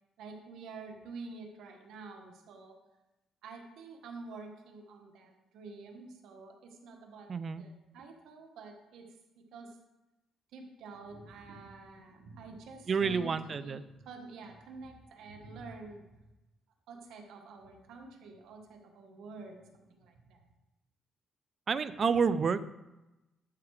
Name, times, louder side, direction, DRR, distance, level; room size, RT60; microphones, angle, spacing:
voice 1, 0.2-2.8 3.4-7.3 7.6-9.1 9.3-9.8 10.5-16.2 16.9-20.5, right 3 dB, 80° right, 3 dB, 1.5 m, -48 dB
voice 2, 7.3-7.6 12.9-13.8 21.7-22.6, right 5 dB, 45° right, 15 dB, 0.5 m, -29 dB
12.0 x 4.7 x 4.9 m, 1.0 s
cardioid pair, 90°, 0 cm